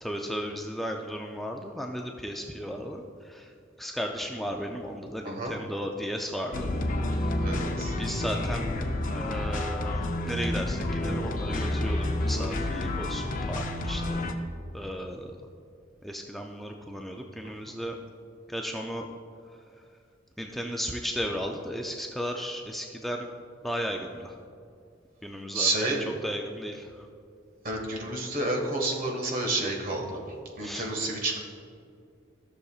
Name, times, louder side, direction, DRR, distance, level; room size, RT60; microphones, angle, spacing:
voice 1, 0.0-3.5 3.8-6.7 7.1-7.4 8.0-8.7 9.1-14.3 14.7-15.4 16.0-18.0 18.5-19.1 20.4-23.3 23.6-24.4 25.2-25.7 26.2-27.1 30.6-30.9, equal, ahead, 1 dB, 0.4 m, -35 dB
sound 1, 6.5-14.3, left 1 dB, 45° left, 0.6 m, -29 dB
voice 2, 7.4-7.9 25.5-26.0 27.6-30.2 30.6-31.4, right 2 dB, 45° right, 0 dB, 1.5 m, -29 dB
14.0 x 6.7 x 2.4 m, 2.3 s
head